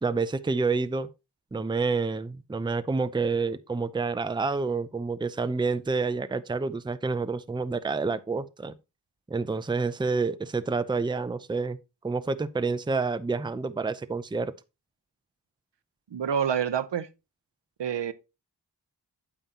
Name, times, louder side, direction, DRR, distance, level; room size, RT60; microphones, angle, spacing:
voice 1, 0.0-1.1 1.5-8.7 9.3-11.8 12.0-14.5, right 4 dB, 10° right, 0.5 m, -28 dB
voice 2, 16.1-17.1 17.8-18.1, right 8 dB, 80° right, 0.7 m, -27 dB
8.8 x 7.1 x 2.8 m
wide cardioid pair, 55°, 42 cm